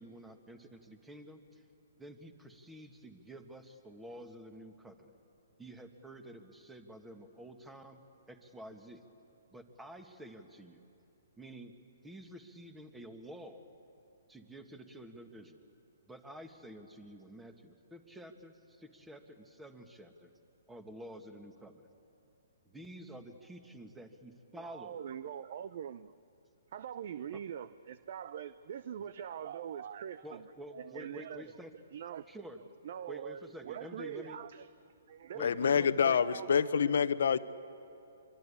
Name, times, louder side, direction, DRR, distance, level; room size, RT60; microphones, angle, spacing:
voice 1, 0.0-1.6 2.0-5.2 5.6-8.0 8.3-9.0 9.5-10.8 11.4-11.7 12.0-13.6 14.3-15.7 16.1-20.3 20.7-21.9 22.7-25.0 27.3-27.4 30.2-31.7 32.3-32.6 33.1-34.4 35.3-36.2, equal, 5° right, 1.8 m, -49 dB
voice 2, 24.5-26.1 26.7-30.4 30.7-31.4 31.9-32.3 32.8-34.7 35.1-36.8, right 9 dB, 55° right, 0.6 m, -43 dB
voice 3, 35.4-37.4, left 7 dB, 70° left, 1.0 m, -27 dB
25.0 x 23.5 x 8.6 m
hypercardioid pair, 140°, 0 cm